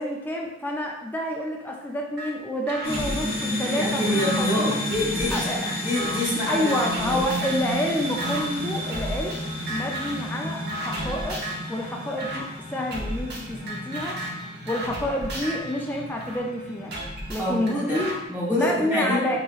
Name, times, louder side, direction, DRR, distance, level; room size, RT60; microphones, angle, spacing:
voice 1, 0.0-4.7 5.3-5.6 6.5-9.4 9.7-11.4 11.7-14.2 14.7-16.9 17.3-18.1 18.5-19.4, left 1 dB, 10° left, -1 dB, 0.3 m, -28 dB
sound 1, 2.2-2.3 2.7-4.4 4.9-7.7 8.2-8.4 8.9-9.4 9.7-10.3 10.7-11.7 12.2-12.4 12.9-16.4 16.9-18.1, right 1 dB, 55° right, 0.6 m, -34 dB
sound 2, 2.8-18.2, equal, 45° left, 1.2 m, -32 dB
voice 2, 3.7-7.2 17.4-18.0 18.3-19.4, left 1 dB, 10° right, -9 dB, 1.0 m, -27 dB
4.1 x 2.8 x 2.3 m, 0.96 s
head